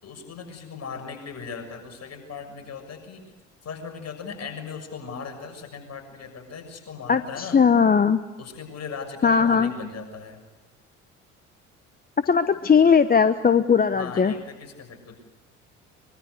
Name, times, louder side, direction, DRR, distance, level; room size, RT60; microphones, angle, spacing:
voice 1, 0.0-3.3 3.6-7.6 8.4-10.4 13.9-15.2, left 5 dB, 45° left, 5 dB, 6.7 m, -38 dB
voice 2, 7.1-8.2 9.2-9.7 12.2-14.3, left 6 dB, 25° left, 12 dB, 1.0 m, -19 dB
24.0 x 23.5 x 8.2 m, 1.2 s
figure-of-eight pair, 55°, 37 cm